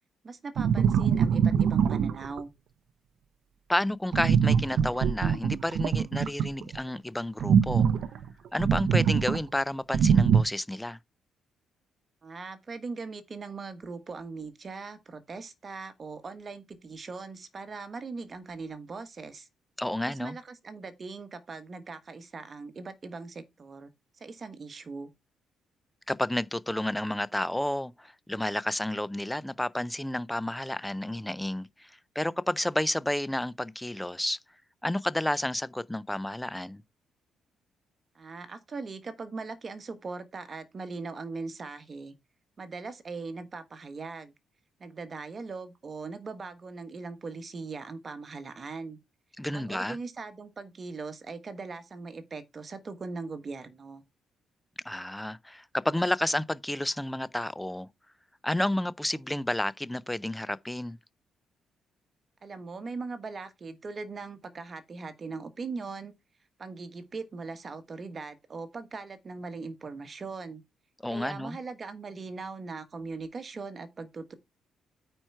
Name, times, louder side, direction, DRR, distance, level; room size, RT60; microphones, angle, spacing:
voice 1, 0.2-2.5 12.2-19.5 20.0-23.9 24.2-25.1 38.1-42.1 42.6-44.3 44.8-49.0 49.5-54.0 62.4-66.1 66.6-70.6 71.1-74.3, right 4 dB, 30° right, 1.2 m, -40 dB
sound 1, 0.6-2.4 4.1-6.8 7.4-9.4 9.9-10.4, right 7 dB, 60° right, 0.6 m, -23 dB
voice 2, 3.7-7.9 8.5-11.0 19.8-20.4 26.1-34.4 34.8-36.8 49.4-50.0 54.9-57.9 58.4-61.0 71.0-71.6, left 1 dB, 5° left, 0.4 m, -31 dB
9.0 x 4.5 x 4.5 m
cardioid pair, 160°, 0 cm